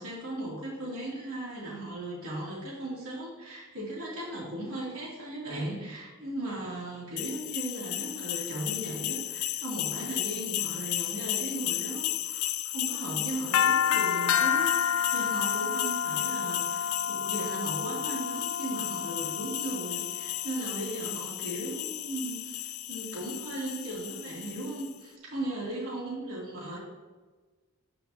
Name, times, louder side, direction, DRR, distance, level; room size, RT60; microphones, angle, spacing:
voice 1, 0.0-26.8, right 1 dB, 85° right, -5 dB, 2.9 m, -37 dB
sound 1, 7.2-24.9, left 10 dB, 85° left, 0.4 m, -31 dB
12.5 x 5.8 x 2.9 m, 1.3 s
head